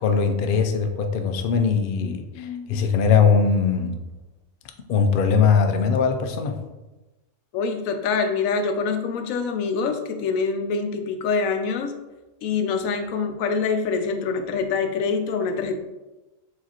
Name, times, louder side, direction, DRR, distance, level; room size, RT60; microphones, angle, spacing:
voice 1, 0.0-3.9 4.9-6.6, left 6 dB, 65° left, 5 dB, 0.5 m, -20 dB
voice 2, 2.0-2.8 7.5-11.9 12.4-15.7, left 5 dB, 80° left, 6 dB, 1.0 m, -25 dB
4.8 x 3.6 x 2.9 m, 1.1 s
omnidirectional pair, 1.4 m